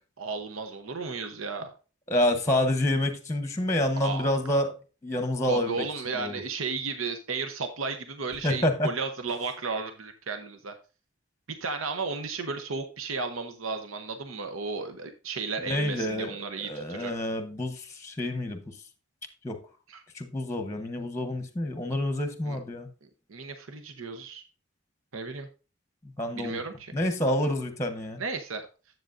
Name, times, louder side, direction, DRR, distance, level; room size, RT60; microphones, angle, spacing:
voice 1, 0.2-1.7 4.0-4.4 5.5-10.7 11.6-17.1 19.9-20.0 22.4-22.6 23.3-24.4 25.1-25.5 26.3-26.9 28.2-28.7, right 4 dB, 80° right, 0.9 m, -34 dB
voice 2, 2.1-4.7 5.0-5.8 6.1-6.4 8.4-8.9 15.6-18.6 19.4-19.6 20.1-22.9 26.2-26.6 26.9-28.2, left 1 dB, 15° left, 0.9 m, -28 dB
10.0 x 7.7 x 2.5 m
head